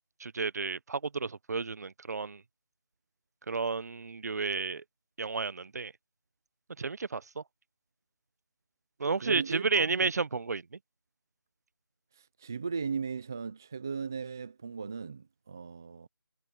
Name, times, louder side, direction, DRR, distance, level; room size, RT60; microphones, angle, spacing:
voice 1, 0.2-2.4 3.5-4.8 5.2-5.9 6.8-7.4 9.0-10.6, right 4 dB, 45° right, 0.8 m, -32 dB
voice 2, 9.2-10.1 12.1-16.1, right 5 dB, 10° right, 0.3 m, -37 dB
figure-of-eight pair, 165°, 12 cm